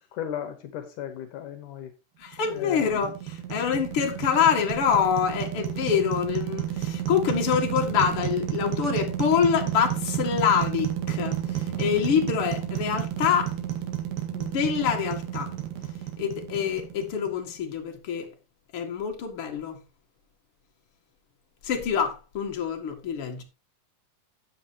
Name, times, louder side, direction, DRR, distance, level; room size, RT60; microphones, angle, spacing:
voice 1, 0.1-1.9 2.5-3.0, left 10 dB, 75° left, 2.7 m, -36 dB
voice 2, 2.2-13.5 14.3-15.5 16.2-18.3 18.7-19.8 21.6-23.4, left 7 dB, 45° left, 2.7 m, -26 dB
sound 1, 2.3-17.5, right 11 dB, 75° right, 3.5 m, -31 dB
13.5 x 8.5 x 3.0 m
omnidirectional pair, 3.8 m